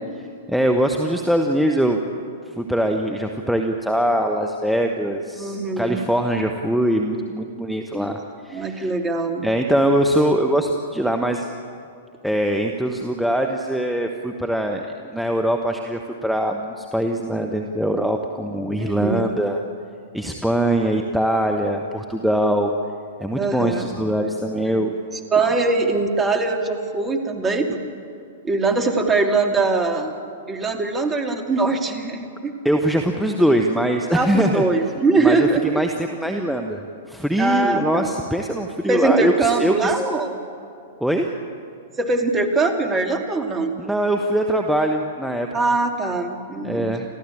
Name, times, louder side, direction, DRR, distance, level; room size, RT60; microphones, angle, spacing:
voice 1, 0.5-2.0 2.5-8.9 9.4-11.5 12.2-19.6 20.1-22.7 23.2-24.9 32.6-34.6 35.2-36.8 37.1-39.9 41.0-41.3 43.8-45.5 46.6-47.0, right 1 dB, ahead, 3 dB, 1.4 m, -22 dB
voice 2, 5.4-6.0 8.5-9.4 18.8-19.2 23.4-23.9 24.7-24.8 25.3-27.8 28.4-30.2 30.5-32.5 34.1-35.6 37.4-38.1 38.9-40.4 42.0-43.8 45.5-46.9, right 3 dB, 20° right, 4 dB, 2.7 m, -22 dB
29.5 x 14.0 x 8.7 m, 2.5 s
figure-of-eight pair, 105°, 0 cm